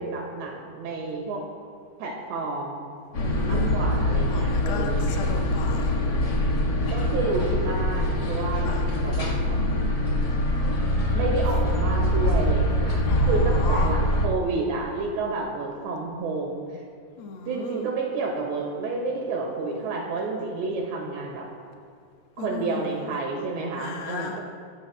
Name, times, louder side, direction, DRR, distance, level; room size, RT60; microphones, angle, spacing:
voice 1, 0.0-1.4 2.0-2.9 3.5-5.1 6.9-9.6 11.1-16.6 17.5-21.5 22.4-24.4, right 3 dB, 85° right, -1 dB, 4.1 m, -30 dB
sound 1, 3.1-14.3, left 1 dB, 60° left, 1.0 m, -24 dB
voice 2, 3.2-3.7 4.3-6.0 8.6-8.8 13.1-13.9 17.2-17.9 22.4-23.0 23.8-24.4, left 4 dB, 80° left, 1 dB, 1.2 m, -35 dB
25.5 x 15.5 x 2.3 m, 2.3 s
omnidirectional pair, 4.9 m